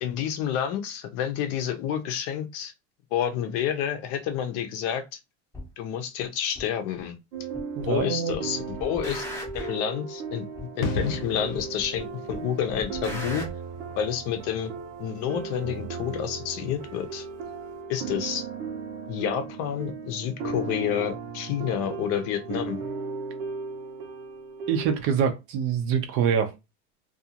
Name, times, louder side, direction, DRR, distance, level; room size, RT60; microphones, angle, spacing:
voice 1, 0.0-2.7 3.1-5.0 5.8-7.2 7.9-9.2 9.5-13.4 14.0-14.7 15.0-17.2 17.9-18.5 19.1-22.8, left 9 dB, 50° left, 0.6 m, -29 dB
sound 1, 5.5-5.7 6.5-6.6 7.5-8.0 8.3-9.8 10.5-10.6 11.5-12.0 12.3-13.5, left 1 dB, 5° left, 0.7 m, -38 dB
sound 2, 7.3-25.0, right 5 dB, 75° right, 0.8 m, -36 dB
voice 2, 7.8-8.4 24.7-26.5, right 7 dB, 40° right, 0.5 m, -25 dB
sound 3, 10.8-17.3 17.6-17.7, left 5 dB, 85° left, 0.8 m, -37 dB
2.5 x 2.4 x 2.8 m
supercardioid pair, 145°, 34 cm